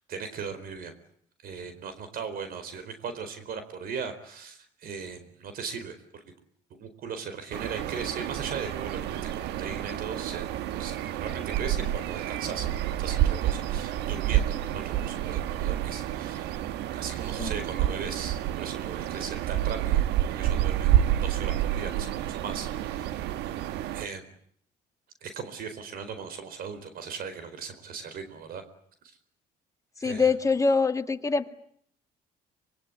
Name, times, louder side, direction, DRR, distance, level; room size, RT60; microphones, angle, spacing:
voice 1, 0.1-0.9 1.4-6.2 6.7-12.7 13.0-16.6 16.9-20.0 20.3-23.3 23.9-24.3 25.2-28.6 29.0-29.2 30.0-30.3, right 6 dB, 60° right, 10 dB, 4.4 m, -38 dB
sound 1, 7.5-24.1, right 12 dB, 85° right, 1.3 m, -29 dB
voice 2, 30.0-31.5, left 4 dB, 20° left, 6 dB, 2.2 m, -24 dB
25.5 x 22.5 x 9.8 m, 0.66 s
cardioid pair, 110°, 17 cm